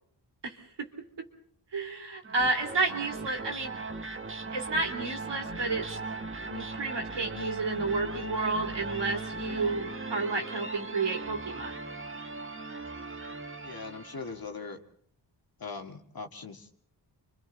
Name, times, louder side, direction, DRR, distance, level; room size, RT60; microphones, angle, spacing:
voice 1, 0.4-0.9 1.2-1.3 1.7-3.8 4.5-6.0 6.5-11.7, right 3 dB, 70° right, 3 dB, 3.3 m, -31 dB
sound 1, 2.2-14.5, right 3 dB, 30° right, 1.6 m, -38 dB
voice 2, 13.6-14.8 15.6-16.7, left 4 dB, 50° left, 5 dB, 2.0 m, -40 dB
29.5 x 24.5 x 4.1 m, 0.63 s
wide cardioid pair, 100°, 45 cm